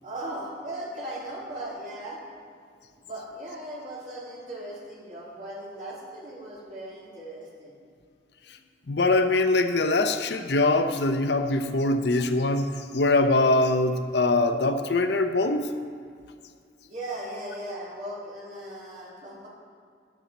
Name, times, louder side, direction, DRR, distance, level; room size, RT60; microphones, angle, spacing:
voice 1, 0.0-2.2 3.0-7.8 16.8-19.5, right 1 dB, 45° right, -6 dB, 3.3 m, -38 dB
voice 2, 8.9-12.7 12.9-15.7, left 2 dB, 70° left, 8 dB, 0.7 m, -23 dB
12.5 x 10.0 x 4.1 m, 2.2 s
head